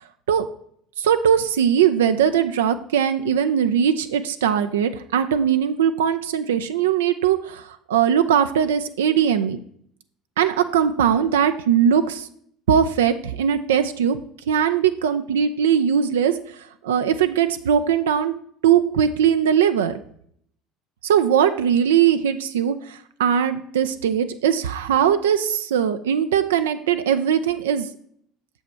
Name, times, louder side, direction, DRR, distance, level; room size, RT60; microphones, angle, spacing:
voice 1, 1.0-9.6 10.4-12.3 12.7-14.2 14.5-16.3 16.8-18.3 18.6-19.9 21.0-27.9, right 8 dB, 80° right, 9 dB, 0.3 m, -20 dB
6.8 x 5.4 x 4.3 m, 0.65 s
hypercardioid pair, 65°, 0 cm